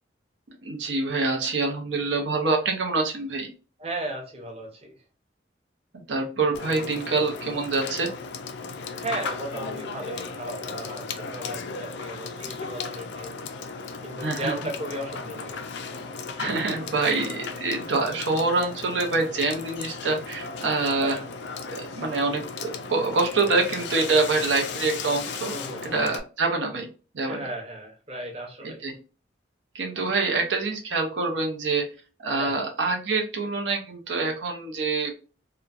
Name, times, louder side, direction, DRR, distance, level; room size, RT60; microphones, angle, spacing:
voice 1, 0.6-3.5 6.1-8.1 14.2-14.5 16.4-21.2 21.7-25.5 25.8-26.9 27.1-27.5 28.6-28.9 29.7-31.8 32.2-35.1, right 3 dB, 85° right, 2 dB, 0.7 m, -26 dB
voice 2, 3.8-4.9 9.0-13.4 14.0-15.6 21.0-21.2 25.5-25.9 27.3-28.9 32.3-32.6, right 1 dB, 35° right, 0 dB, 0.8 m, -36 dB
Water / Water tap faucet / Sink (filling or washing), 6.5-26.2, left 4 dB, 70° left, 0.4 m, -36 dB
2.9 x 2.2 x 2.4 m, 0.36 s
head